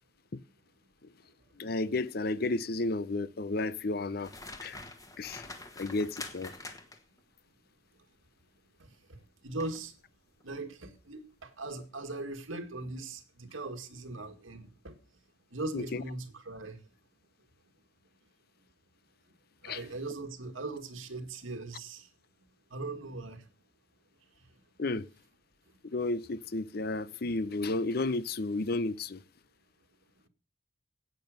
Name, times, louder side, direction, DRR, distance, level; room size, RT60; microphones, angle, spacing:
voice 1, 1.6-4.3 4.6-4.8 5.2-5.5 5.8-6.5 15.7-16.0 19.6-19.8 24.8-25.1 25.8-29.2, left 2 dB, 50° left, 0.6 m, -32 dB
sound 1, 4.2-7.2 9.6-9.9 10.4-10.6, left 2 dB, 15° left, 1.5 m, -45 dB
voice 2, 8.8-10.0 10.4-15.0 15.5-16.8 19.6-22.1 22.7-23.5 24.4-24.5 25.7-25.8, right 2 dB, 85° right, 2.1 m, -40 dB
11.5 x 8.9 x 6.5 m
head